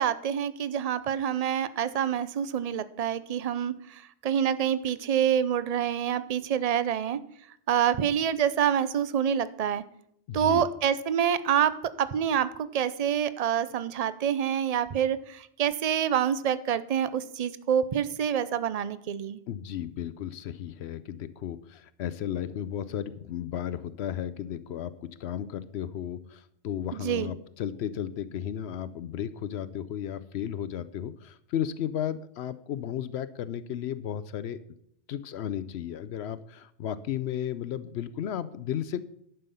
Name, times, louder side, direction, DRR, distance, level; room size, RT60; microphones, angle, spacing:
voice 1, 0.0-7.2 7.7-9.8 10.3-11.7 12.0-19.4 26.9-27.3, right 9 dB, 45° right, 15 dB, 0.5 m, -27 dB
voice 2, 10.3-10.7 19.5-34.6 35.1-39.0, left 10 dB, 75° left, 15 dB, 0.8 m, -34 dB
11.0 x 5.7 x 6.9 m, 0.73 s
omnidirectional pair, 1.2 m